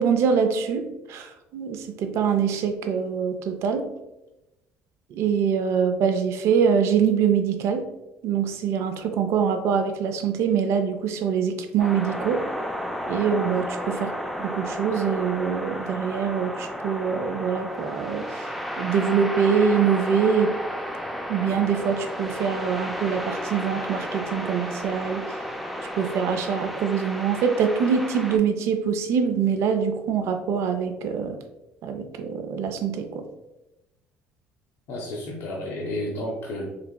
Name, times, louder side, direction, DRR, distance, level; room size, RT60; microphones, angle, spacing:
voice 1, 0.0-3.9 5.1-7.9 8.2-12.4 13.1-14.1 14.4-18.3 18.8-20.6 21.3-25.3 26.0-31.4 31.8-33.3, right 7 dB, 65° right, 7 dB, 0.4 m, -24 dB
sound 1, 11.8-28.4, equal, ahead, 0.3 m, -33 dB
voice 2, 34.9-36.7, left 1 dB, 70° left, -2 dB, 0.6 m, -31 dB
3.3 x 2.9 x 2.2 m, 0.97 s
supercardioid pair, 90°, 5 cm